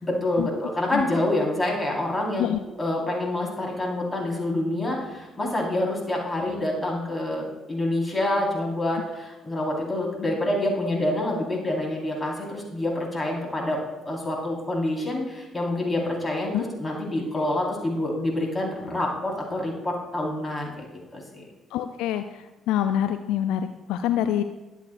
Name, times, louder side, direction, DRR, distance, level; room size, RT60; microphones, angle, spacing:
voice 1, 0.0-2.5 2.8-20.9 21.1-21.4, left 1 dB, 20° left, -2 dB, 4.2 m, -27 dB
voice 2, 21.7-24.4, left 11 dB, 70° left, 9 dB, 0.4 m, -26 dB
21.5 x 8.4 x 2.5 m, 1.1 s
hypercardioid pair, 45°, 0 cm